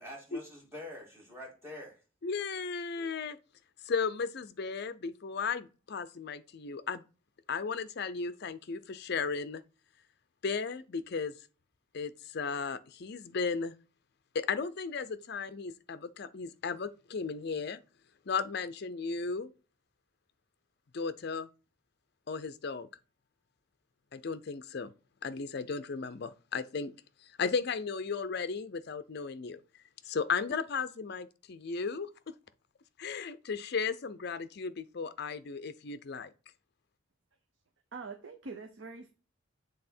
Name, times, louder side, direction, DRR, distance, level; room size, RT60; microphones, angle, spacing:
voice 1, 0.0-2.0 3.0-3.1, left 1 dB, 10° right, 2.4 m, -46 dB
voice 2, 2.2-3.4 3.9-7.0 7.5-9.6 10.4-11.3 11.9-13.7 14.3-17.8 18.3-19.5 20.9-21.5 22.3-22.9 24.1-24.9 25.2-26.9 27.4-29.6 30.0-32.3 33.0-36.3, left 5 dB, 50° left, 0.5 m, -35 dB
voice 3, 37.9-39.1, right 4 dB, 55° right, 0.7 m, -44 dB
7.6 x 3.5 x 4.3 m
head